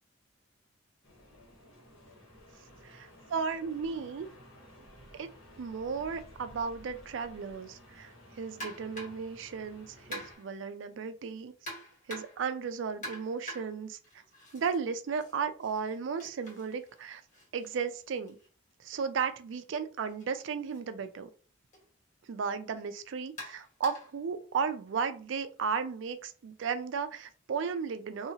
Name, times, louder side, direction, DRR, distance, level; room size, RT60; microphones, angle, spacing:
sound 1, 1.0-10.3, equal, 85° left, 1.3 m, -54 dB
voice 1, 2.8-4.3 5.1-5.3 5.6-11.5 12.1-14.0 14.5-17.2 17.5-18.4 18.8-21.3 22.3-28.3, right 6 dB, 65° right, 10 dB, 0.4 m, -35 dB
sound 2, 8.6-9.3 10.1-10.6 11.7-12.5 13.0-14.8 15.1-19.0 20.1-20.2 20.7-20.8 21.7-21.9 23.4-24.2, equal, 40° left, 1.4 m, -46 dB
2.7 x 2.7 x 2.8 m, 0.39 s
head